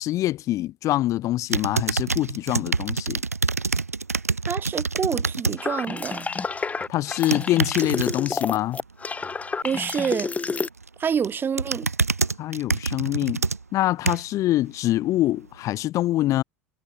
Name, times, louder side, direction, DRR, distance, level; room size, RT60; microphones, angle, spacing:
voice 1, 0.0-3.2 6.9-8.8 12.4-13.4 13.7-16.4, left 15 dB, 45° left, 0.6 m, -24 dB
sound 1, 1.5-5.6 6.0-6.3 7.1-8.1 10.5-10.9 11.2-14.4 15.0-15.1, right 4 dB, 90° right, 0.6 m, -26 dB
voice 2, 4.5-6.3 9.6-10.3 11.0-11.9, right 7 dB, 25° right, 1.1 m, -27 dB
sound 2, 5.6-10.7, left 4 dB, 20° left, 1.4 m, -29 dB
figure-of-eight pair, 75°, 8 cm